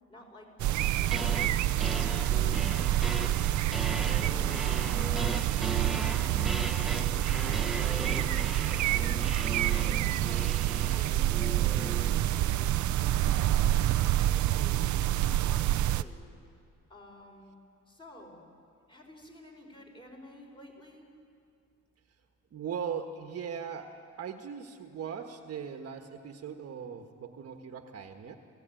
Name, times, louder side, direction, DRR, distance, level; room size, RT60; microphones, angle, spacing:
voice 1, 0.1-4.8 5.1-6.8 7.3-9.3 9.5-10.5 10.9-11.9 12.2-14.9 15.2-16.3 16.9-17.5 17.9-18.4 18.9-21.1, equal, 15° left, 1 dB, 4.7 m, -52 dB
sound 1, 0.6-16.0, right 13 dB, 65° right, 0.7 m, -27 dB
sound 2, 0.8-1.5 1.8-12.2, right 1 dB, ahead, 1.1 m, -38 dB
voice 2, 22.5-28.4, right 7 dB, 50° right, 5 dB, 1.5 m, -39 dB
29.0 x 16.0 x 9.1 m, 2.4 s
cardioid pair, 145°, 31 cm